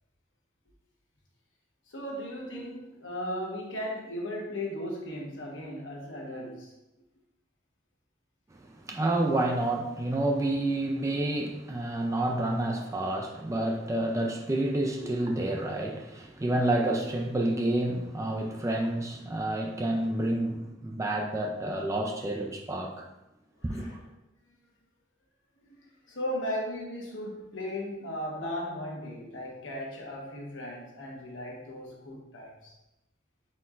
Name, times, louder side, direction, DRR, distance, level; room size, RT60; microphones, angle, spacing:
voice 1, 1.9-6.7 23.6-24.0 25.6-25.8 26.1-32.7, left 1 dB, 70° left, 1.1 m, -36 dB
voice 2, 8.8-23.1 23.6-23.9, right 1 dB, 15° right, 0.3 m, -29 dB
4.2 x 4.2 x 2.4 m
head